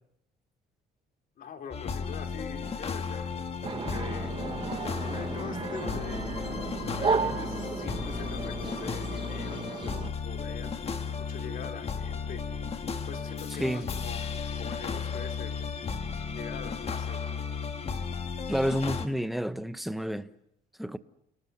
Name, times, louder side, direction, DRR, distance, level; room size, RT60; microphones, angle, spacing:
voice 1, 1.4-3.3 3.7-4.3 4.8-6.3 6.8-10.7 11.2-12.4 13.1-14.3 14.6-15.5 16.3-17.4, left 7 dB, 55° left, 3.4 m, -43 dB
sound 1, 1.7-19.1, left 6 dB, 35° left, 1.7 m, -34 dB
sound 2, 3.6-10.1, right 5 dB, 30° right, 1.0 m, -34 dB
voice 2, 18.5-20.3 20.8-21.0, equal, ahead, 1.1 m, -29 dB
29.5 x 19.0 x 8.1 m
cardioid pair, 110°, 17 cm